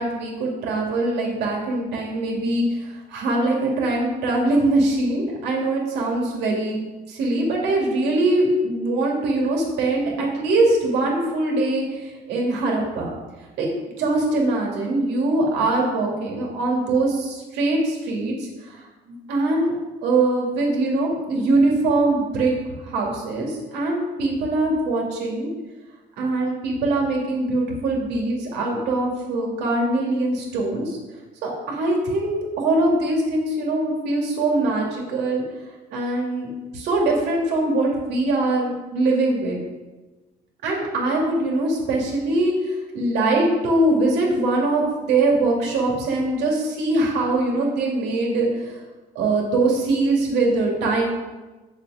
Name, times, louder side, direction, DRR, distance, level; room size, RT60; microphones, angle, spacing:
voice 1, 0.0-6.8 7.1-13.1 13.6-13.7 14.0-19.7 20.0-22.5 22.8-25.5 26.2-31.0 31.4-35.4 35.9-39.6 40.6-48.8 49.1-51.0, right 2 dB, 85° right, -1 dB, 2.5 m, -22 dB
8.1 x 6.7 x 4.9 m, 1.2 s
cardioid pair, 110°, 17 cm